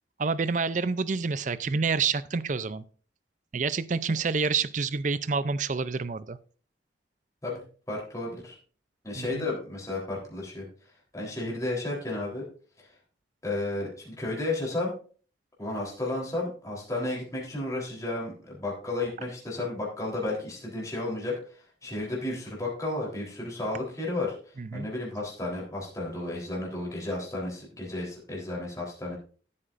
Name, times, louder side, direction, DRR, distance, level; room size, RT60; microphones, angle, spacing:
voice 1, 0.2-2.8 3.5-6.4 9.2-9.5 24.6-24.9, right 4 dB, 40° right, 16 dB, 0.5 m, -28 dB
voice 2, 7.9-8.6 9.0-10.7 11.1-12.5 12.8-12.9 13.4-15.0 15.6-29.2, left 2 dB, 20° left, -4 dB, 3.7 m, -33 dB
15.0 x 8.6 x 2.6 m, 0.41 s
head